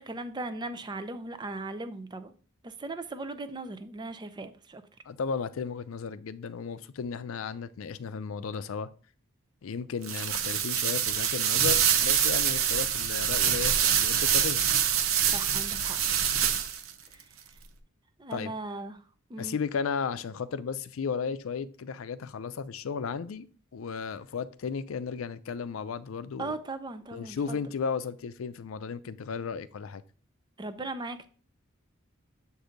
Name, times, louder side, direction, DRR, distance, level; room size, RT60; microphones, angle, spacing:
voice 1, 0.0-2.3 2.6-4.8 15.3-16.0 17.1-17.2 18.2-19.0 19.3-19.6 26.4-27.6 30.6-31.3, right 2 dB, 20° right, 0.5 m, -38 dB
voice 2, 5.1-8.9 9.6-14.7 18.3-18.5 19.4-23.4 23.7-26.5 27.1-30.0, left 5 dB, 75° left, 0.4 m, -34 dB
sound 1, 10.0-16.9, right 9 dB, 80° right, 0.6 m, -25 dB
7.8 x 2.6 x 5.0 m
head